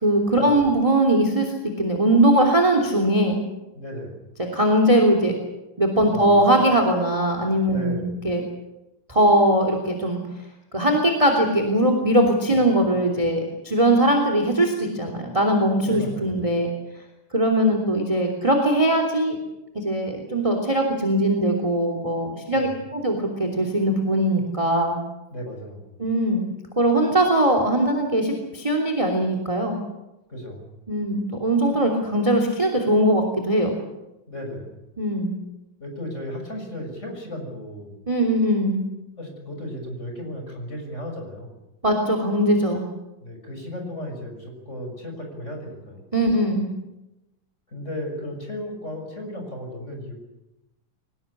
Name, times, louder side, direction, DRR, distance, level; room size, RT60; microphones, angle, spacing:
voice 1, 0.0-3.4 4.5-5.3 5.8-8.4 9.1-10.2 10.7-16.7 17.3-19.4 19.7-25.0 26.0-26.4 26.8-29.8 30.9-33.8 35.0-35.4 38.1-38.8 41.8-42.9 46.1-46.7, right 1 dB, 10° right, 4 dB, 2.8 m, -20 dB
voice 2, 3.7-4.2 6.1-6.7 7.6-8.2 12.5-13.0 15.8-16.3 22.5-22.8 25.3-26.0 30.3-30.7 34.3-34.7 35.8-38.0 39.2-41.5 43.2-46.1 47.7-50.1, left 1 dB, 20° left, 3 dB, 6.6 m, -35 dB
24.0 x 19.5 x 8.6 m, 0.97 s
omnidirectional pair, 3.7 m